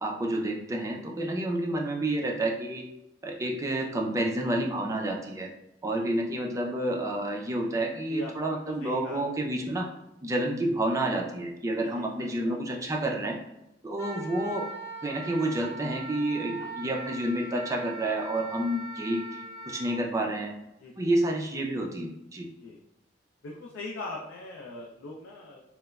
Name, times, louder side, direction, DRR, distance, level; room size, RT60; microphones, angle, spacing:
voice 1, 0.0-2.8 3.2-5.5 5.8-9.9 10.2-13.4 13.8-14.7 15.0-20.5 21.0-22.5, right 1 dB, 15° right, 0 dB, 0.3 m, -29 dB
voice 2, 8.1-9.3 11.8-12.9 16.5-16.7 20.8-21.1 22.6-22.8 23.4-25.6, left 2 dB, 90° left, -1 dB, 0.4 m, -42 dB
Wind instrument woodwind instrument, 14.0-20.0, right 2 dB, 70° left, 0.7 m, -41 dB
3.0 x 2.0 x 2.2 m, 0.87 s
head